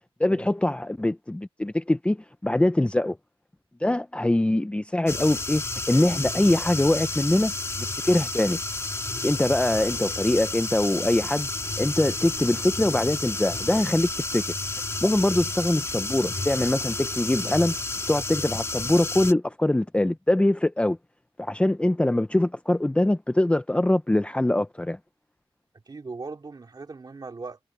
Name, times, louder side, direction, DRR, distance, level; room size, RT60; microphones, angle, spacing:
voice 1, 0.2-3.2 3.8-7.5 8.0-8.6 9.2-11.5 11.8-14.4 15.0-17.7 18.1-21.0 21.4-25.0, left 1 dB, 10° left, 0.7 m, -23 dB
sound 1, 5.1-19.3, left 2 dB, 25° left, 2.6 m, -31 dB
voice 2, 25.9-27.6, right 4 dB, 40° right, 2.8 m, -39 dB
wide cardioid pair, 125°, 10 cm